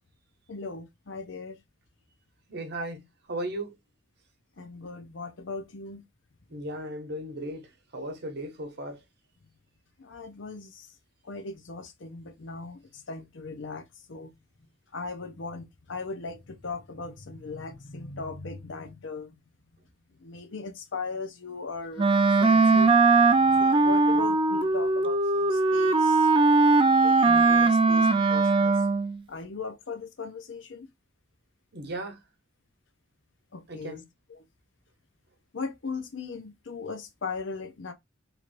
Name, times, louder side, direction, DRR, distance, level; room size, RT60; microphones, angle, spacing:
voice 1, 0.5-1.6 4.6-6.0 10.0-10.9 11.2-14.3 14.9-19.3 20.2-22.1 22.4-26.3 27.0-28.8 29.3-30.9 33.5-34.0 34.3-34.4 35.5-37.9, left 4 dB, 80° left, 0.7 m, -38 dB
voice 2, 2.5-3.8 4.6-4.7 6.5-9.0 31.7-32.2 33.7-34.1, right 1 dB, 55° right, 0.9 m, -36 dB
Wind instrument woodwind instrument, 22.0-29.1, right 3 dB, 25° right, 0.4 m, -20 dB
3.0 x 2.5 x 3.1 m
head